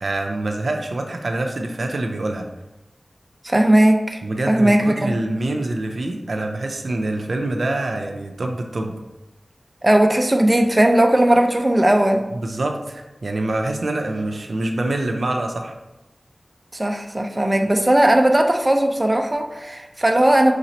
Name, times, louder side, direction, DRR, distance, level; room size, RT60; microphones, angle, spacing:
voice 1, 0.0-2.5 4.2-8.9 12.3-15.8, right 2 dB, 80° right, 3 dB, 0.5 m, -25 dB
voice 2, 3.4-4.2 4.5-5.2 9.8-12.3 16.7-20.5, right 1 dB, 25° right, 4 dB, 0.5 m, -17 dB
5.8 x 2.9 x 2.8 m, 1.0 s
wide cardioid pair, 55°, 0 cm